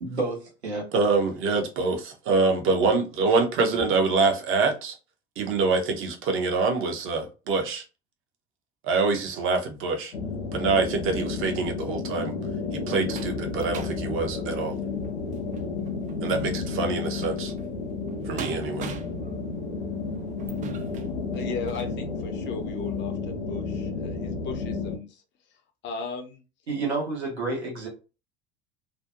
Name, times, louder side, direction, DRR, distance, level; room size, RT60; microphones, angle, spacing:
voice 1, 0.0-0.9 26.7-27.9, right 3 dB, 80° right, 1.1 m, -29 dB
voice 2, 0.9-5.0 5.4-7.8 8.8-10.1 10.5-12.3 12.7-14.7 16.2-17.5 18.3-18.9, right 3 dB, 40° right, 0.7 m, -25 dB
sound 1, 10.1-25.0, left 4 dB, 85° left, 0.5 m, -32 dB
sound 2, 12.1-22.0 22.5-22.7 23.0-23.1, right 7 dB, 25° right, 0.4 m, -43 dB
voice 3, 21.3-25.2 25.8-26.4, left 4 dB, 35° left, 0.5 m, -37 dB
2.5 x 2.1 x 2.5 m
figure-of-eight pair, 70°, 32 cm